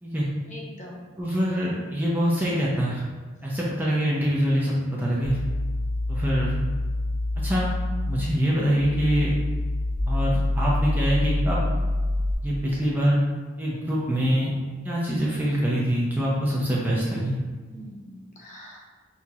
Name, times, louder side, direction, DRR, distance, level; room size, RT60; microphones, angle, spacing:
voice 1, 0.5-1.1 17.7-18.8, left 1 dB, 35° left, -3 dB, 0.8 m, -43 dB
voice 2, 1.2-3.0 3.4-5.4 6.1-6.6 7.4-7.7 8.1-9.3 10.1-11.7 12.4-13.2 13.6-14.5 14.8-17.4, equal, 10° right, -6 dB, 0.5 m, -24 dB
sound 1, 5.2-12.3, left 1 dB, 90° left, 0.7 m, -26 dB
5.6 x 2.8 x 2.4 m, 1.4 s
head